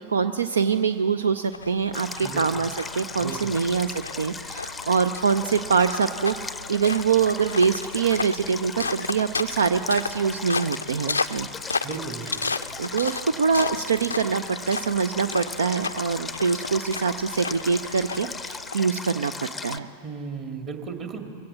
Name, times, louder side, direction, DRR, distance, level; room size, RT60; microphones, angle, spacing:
voice 1, 0.0-2.7 3.0-11.5 12.8-19.9, right 6 dB, 70° right, 12 dB, 0.5 m, -24 dB
sound 1, 1.5-19.2, left 4 dB, 80° left, 0.4 m, -34 dB
Stream, 1.9-19.8, left 4 dB, 10° left, 0.6 m, -37 dB
voice 2, 2.2-2.7 3.2-3.6 11.8-12.5 20.0-21.3, right 5 dB, 30° right, 4 dB, 2.2 m, -35 dB
23.0 x 16.0 x 7.3 m, 2.6 s
figure-of-eight pair, 90°, 0 cm